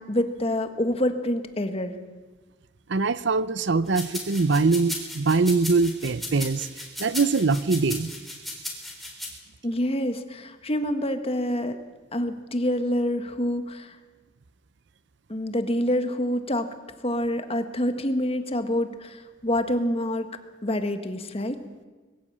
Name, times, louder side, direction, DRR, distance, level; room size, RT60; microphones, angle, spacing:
voice 1, 0.0-2.0 9.6-11.8 12.1-14.0 15.3-16.7 17.0-20.3 20.6-21.6, left 1 dB, 30° left, 8 dB, 1.5 m, -27 dB
voice 2, 2.9-8.1, right 4 dB, 60° right, 16 dB, 0.7 m, -23 dB
sound 1, 3.9-9.3, left 1 dB, ahead, 3.6 m, -35 dB
21.0 x 15.0 x 8.6 m, 1.3 s
head